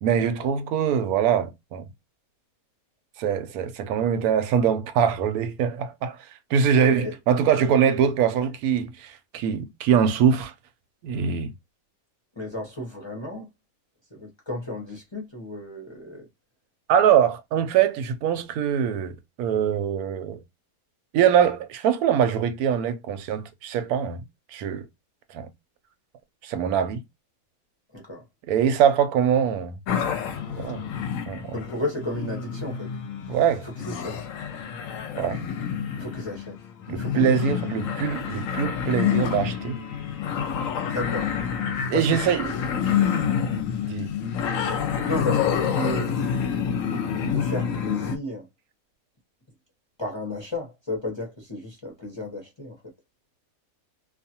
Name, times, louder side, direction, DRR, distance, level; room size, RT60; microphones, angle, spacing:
voice 1, 0.0-1.8 3.2-6.2 6.5-10.5 11.0-11.5 16.9-20.4 21.1-24.2 24.5-24.9 25.3-25.5 26.4-27.0 28.5-29.8 30.5-30.8 31.3-31.6 33.3-33.7 35.1-35.4 36.9-39.8 41.9-42.5 43.9-44.1, right 8 dB, 90° right, 1.1 m, -23 dB
voice 2, 12.4-13.5 14.2-16.3 27.9-28.2 31.5-32.9 33.6-34.2 36.0-36.5 37.0-37.4 40.9-41.3 41.9-42.1 42.4-42.5 45.0-46.2 47.3-48.5 50.0-52.8, left 1 dB, 25° left, 0.7 m, -33 dB
sound 1, 29.9-48.2, left 7 dB, 70° left, 0.9 m, -28 dB
2.5 x 2.4 x 2.7 m
omnidirectional pair, 1.5 m